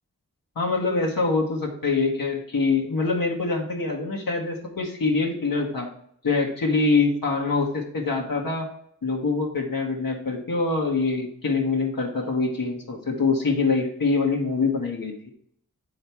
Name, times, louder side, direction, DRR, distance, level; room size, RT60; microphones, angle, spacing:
voice 1, 0.5-5.9 6.2-8.7 9.0-15.1, left 3 dB, 85° left, -1 dB, 1.3 m, -24 dB
8.8 x 3.5 x 4.3 m, 0.65 s
cardioid pair, 50°, 33 cm